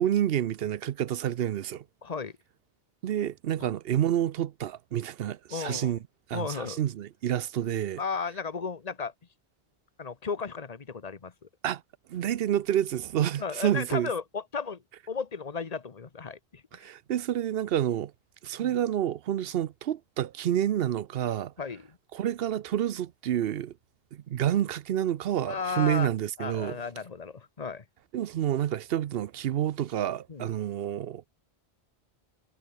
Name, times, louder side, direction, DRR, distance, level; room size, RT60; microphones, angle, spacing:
voice 1, 0.0-1.8 3.0-6.0 6.3-8.0 11.6-11.8 12.1-14.1 16.7-18.1 18.4-21.5 22.1-23.7 24.1-26.8 28.1-31.3, right 11 dB, 65° right, 0.8 m, -29 dB
voice 2, 2.0-2.3 3.6-3.7 5.5-6.0 6.3-6.8 8.0-9.1 10.0-11.3 13.4-14.8 15.1-16.9 18.6-18.7 21.6-21.9 25.4-26.1 26.4-27.8 30.3-30.5, left 5 dB, 40° left, 1.1 m, -34 dB
omnidirectional pair, 1.1 m